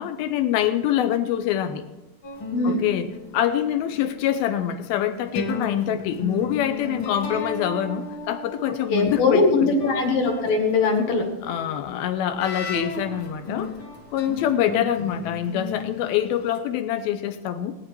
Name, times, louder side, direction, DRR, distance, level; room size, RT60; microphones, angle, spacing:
voice 1, 0.0-1.9 2.6-9.7 11.4-13.7 14.1-17.8, left 10 dB, 80° left, 9 dB, 2.6 m, -25 dB
sound 1, 2.2-4.6 5.3-9.1 9.8-16.6, left 3 dB, 40° left, 1.9 m, -35 dB
voice 2, 2.5-2.8 8.9-11.2, left 3 dB, 65° left, 2 dB, 3.5 m, -21 dB
18.5 x 9.8 x 4.6 m, 1.0 s
omnidirectional pair, 4.5 m